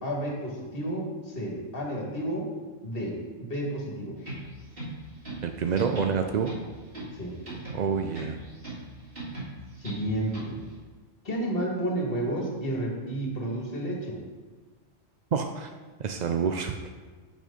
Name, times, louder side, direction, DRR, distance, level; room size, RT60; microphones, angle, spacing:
voice 1, 0.0-2.5 2.8-4.2 7.2-7.3 9.8-10.6 11.2-14.2, right 1 dB, 50° left, -1 dB, 1.9 m, -31 dB
sound 1, 4.2-10.7, right 2 dB, 45° right, 2.9 m, -40 dB
voice 2, 5.4-6.5 7.7-8.4 15.3-15.7 16.0-16.8, right 6 dB, 70° right, 6 dB, 0.4 m, -27 dB
6.6 x 6.3 x 5.1 m, 1.4 s
omnidirectional pair, 1.3 m